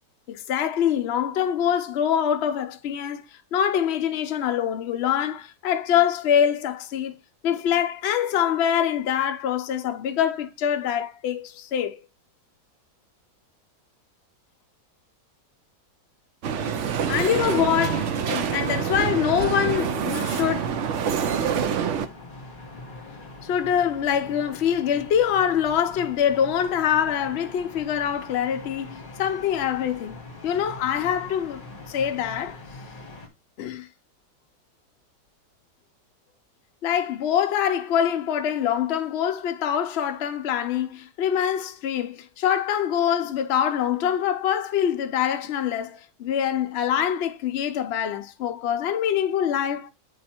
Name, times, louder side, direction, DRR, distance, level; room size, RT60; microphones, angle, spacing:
voice 1, 0.3-3.2 3.5-7.2 7.4-12.0 17.1-20.7 23.4-32.6 33.6-33.9 36.8-49.9, left 9 dB, 65° left, 0.6 m, -24 dB
sound 1, 16.4-22.1, right 7 dB, 60° right, 0.8 m, -26 dB
sound 2, 16.8-33.3, left 2 dB, 30° left, 1.4 m, -43 dB
9.0 x 3.2 x 4.3 m
omnidirectional pair, 1.9 m